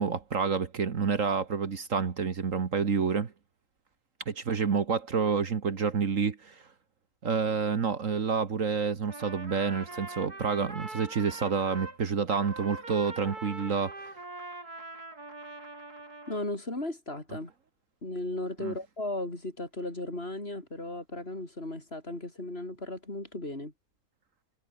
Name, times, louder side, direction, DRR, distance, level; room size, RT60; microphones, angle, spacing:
voice 1, 0.0-3.3 4.3-6.6 7.2-14.1 18.6-18.7, right 6 dB, 55° right, 1.8 m, -28 dB
Trumpet, 9.0-12.0 12.3-16.4, right 2 dB, 75° right, 6.2 m, -42 dB
voice 2, 16.3-17.5 18.0-23.7, left 2 dB, 40° left, 5.3 m, -36 dB
omnidirectional pair, 1.6 m